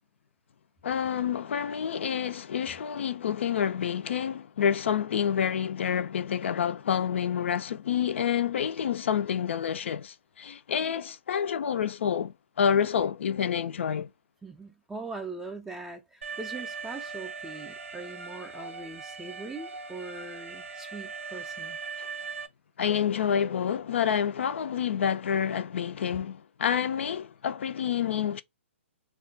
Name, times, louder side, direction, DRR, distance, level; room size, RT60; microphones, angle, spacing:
voice 1, 0.8-14.1 22.8-28.4, left 8 dB, 65° left, 0.3 m, -28 dB
voice 2, 14.4-21.8, right 3 dB, 5° right, 0.3 m, -41 dB
Alarm, 16.2-22.5, right 5 dB, 85° right, 0.6 m, -40 dB
2.3 x 2.2 x 3.7 m
hypercardioid pair, 145°, 7 cm